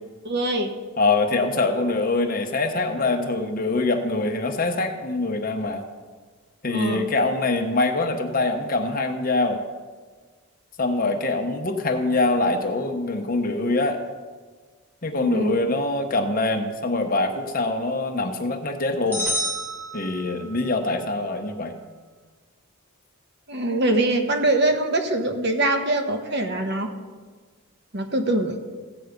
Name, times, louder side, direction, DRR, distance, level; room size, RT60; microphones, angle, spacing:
voice 1, 0.2-0.7 6.7-7.1 15.2-15.5 23.5-26.9 27.9-28.5, right 2 dB, 50° right, 5 dB, 1.2 m, -23 dB
voice 2, 1.0-5.8 6.6-9.6 10.8-14.0 15.0-19.2 19.9-21.7, left 2 dB, 40° left, 4 dB, 1.1 m, -24 dB
sound 1, 19.1-20.7, equal, 10° right, 3.2 m, -29 dB
15.5 x 8.2 x 5.2 m, 1.4 s
head